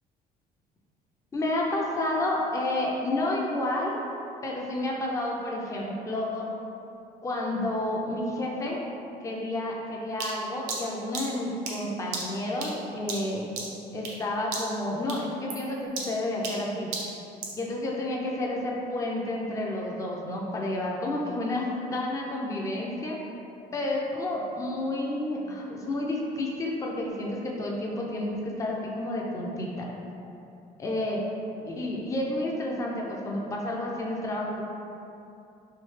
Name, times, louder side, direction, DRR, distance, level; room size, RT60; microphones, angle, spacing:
voice 1, 1.3-4.0 4.4-6.5 7.2-8.8 9.2-13.5 13.9-16.9 17.6-23.2 23.7-29.9 30.8-31.2 31.6-34.6, left 1 dB, 20° left, -2 dB, 0.5 m, -30 dB
sound 1, 10.2-14.3 14.5-14.8 15.1-17.6, right 3 dB, 90° right, 0.6 m, -36 dB
3.2 x 2.7 x 3.1 m, 2.7 s
cardioid pair, 110°, 17 cm